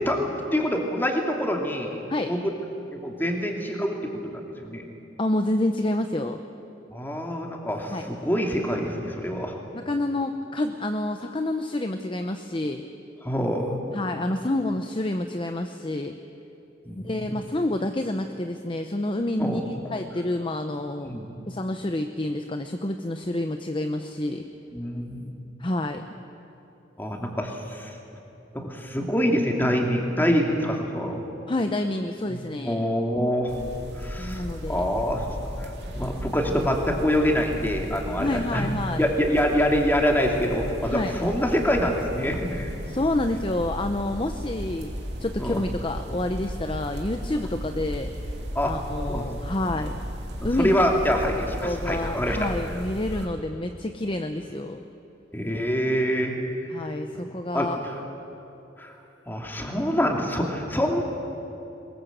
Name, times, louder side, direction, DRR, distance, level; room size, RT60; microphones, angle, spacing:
voice 1, 0.5-2.0 2.3-2.5 2.9-4.8 6.9-9.5 13.2-13.8 16.9-17.4 19.4-19.6 21.0-21.3 24.7-25.3 27.0-28.0 28.5-31.2 32.3-33.5 34.0-38.7 39.0-42.7 45.4-45.6 48.5-48.7 49.1-49.2 49.7-49.9 50.6-52.4 55.3-56.4 57.1-57.2 57.5-57.7 58.8-58.9 59.3-61.0, equal, 10° left, 1 dB, 2.6 m, -25 dB
voice 2, 5.2-6.4 7.9-8.1 9.7-12.9 13.9-16.2 17.0-21.2 21.5-24.4 25.6-26.0 31.5-32.8 34.2-34.8 38.2-39.0 40.9-41.2 42.9-44.9 45.2-48.4 48.6-50.0 50.4-50.7 51.6-54.8 56.7-57.8, left 1 dB, 30° left, 6 dB, 0.8 m, -28 dB
sound 1, 33.5-53.3, equal, 65° right, 2.8 m, -35 dB
22.5 x 21.0 x 8.0 m, 2.8 s
head